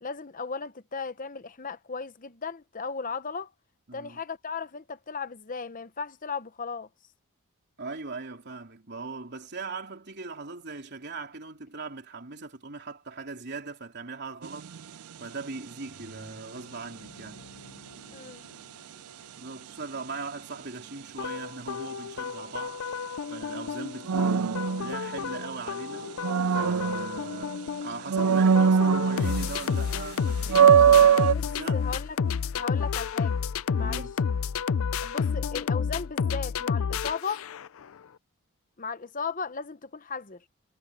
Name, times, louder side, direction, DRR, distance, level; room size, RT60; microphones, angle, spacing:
voice 1, 0.0-3.5 3.9-6.9 18.1-18.4 28.5-28.7 31.3-32.2 32.5-33.3 33.7-34.1 35.0-37.5 38.8-40.5, left 5 dB, 35° left, 0.9 m, -36 dB
voice 2, 3.9-4.2 7.8-14.7 15.2-17.4 19.3-22.8 23.3-26.1 26.5-31.2 31.6-31.9 33.8-34.1, right 3 dB, 50° right, 3.4 m, -39 dB
sound 1, 14.4-14.8 24.1-25.5 25.9-27.6 28.1-29.6 30.0-30.1 30.5-31.3, right 7 dB, 80° right, 0.5 m, -21 dB
sound 2, 15.4-21.0, left 1 dB, 85° left, 4.1 m, -54 dB
sound 3, 21.2-37.8, left 6 dB, 65° left, 0.4 m, -30 dB
head